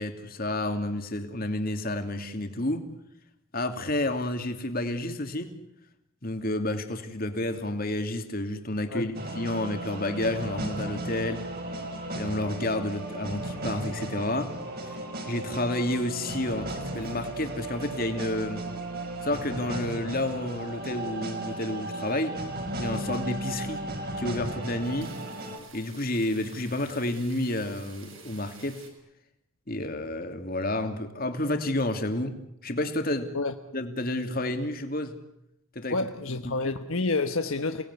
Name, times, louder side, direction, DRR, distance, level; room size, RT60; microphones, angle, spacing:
voice 1, 0.0-2.9 3.5-5.5 6.2-11.5 12.2-14.6 14.8-14.9 15.3-18.7 19.2-22.4 22.8-23.8 24.2-25.1 25.7-28.9 29.7-33.3 33.7-35.2 35.7-36.0 36.4-36.6, left 1 dB, 45° left, 2.8 m, -30 dB
sound 1, 9.2-25.6, right 1 dB, 45° right, 4.9 m, -35 dB
sound 2, 16.9-17.8 18.1-18.6 19.0-19.6 20.0-20.1 20.9-21.4 21.7-21.9 22.4-22.5 22.9-23.0 23.5-23.6 24.1-24.3 24.6-28.9, right 6 dB, 65° right, 6.3 m, -51 dB
voice 2, 35.9-37.8, left 3 dB, 70° left, 1.3 m, -29 dB
30.0 x 19.5 x 9.8 m
head